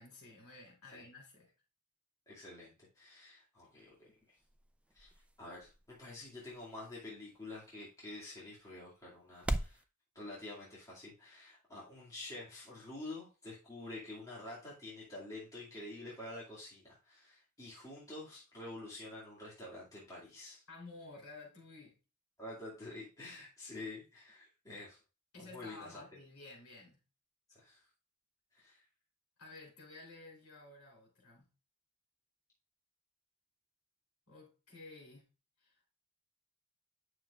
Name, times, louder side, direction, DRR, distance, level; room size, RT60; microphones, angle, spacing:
voice 1, 0.0-1.5 20.7-22.0 25.3-27.0 29.4-31.5 34.3-35.3 35.6-35.9, left 2 dB, 70° left, 3.7 m, -53 dB
voice 2, 2.3-4.4 4.9-5.1 5.4-9.8 10.1-20.6 22.4-25.0 25.4-26.0 27.5-27.8 28.5-28.8, left 2 dB, 15° left, 2.3 m, -48 dB
sound 1, 3.6-9.8, right 1 dB, 5° right, 0.3 m, -44 dB
9.1 x 6.2 x 2.5 m
head